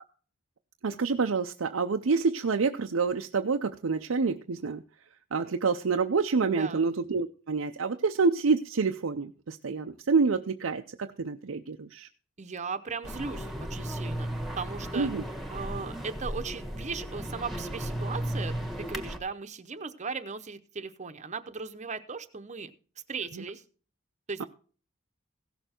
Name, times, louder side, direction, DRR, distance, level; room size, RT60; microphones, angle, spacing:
voice 1, 0.8-4.8 5.3-12.1 14.9-15.2 24.4-24.5, right 4 dB, 85° right, 5 dB, 0.6 m, -27 dB
voice 2, 6.5-6.9 12.4-15.1 15.5-22.7 23.1-23.6 24.3-24.4, right 4 dB, 35° right, 10 dB, 0.8 m, -37 dB
sound 1, 13.0-19.2, right 1 dB, ahead, 1.4 m, -35 dB
16.5 x 6.8 x 4.3 m, 0.39 s
head